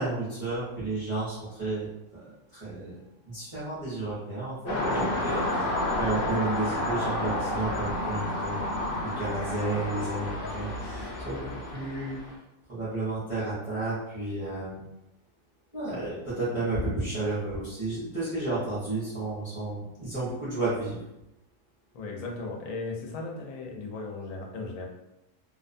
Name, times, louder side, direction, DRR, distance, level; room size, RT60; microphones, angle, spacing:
voice 1, 0.0-12.4 12.7-14.8 15.7-21.0, right 2 dB, 30° right, -12 dB, 0.8 m, -32 dB
sound 1, 4.7-12.3, left 1 dB, 65° left, 0.6 m, -30 dB
voice 2, 21.9-24.9, left 3 dB, 80° left, 0 dB, 1.0 m, -36 dB
2.5 x 2.1 x 2.5 m, 0.89 s
omnidirectional pair, 1.4 m